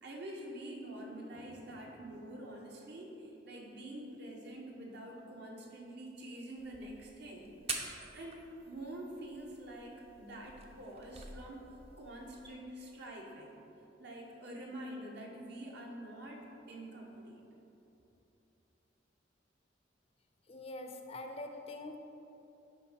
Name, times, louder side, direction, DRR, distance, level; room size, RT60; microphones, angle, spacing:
voice 1, 0.0-7.5 8.1-8.4 8.7-9.9 10.2-11.6 12.0-13.6 14.0-17.4, right 1 dB, 60° right, -1 dB, 1.2 m, -46 dB
sound 1, 6.6-12.6, right 4 dB, 35° right, 0.7 m, -47 dB
voice 2, 20.5-22.0, left 2 dB, 35° left, 5 dB, 0.5 m, -44 dB
9.7 x 3.6 x 5.8 m, 3.0 s
head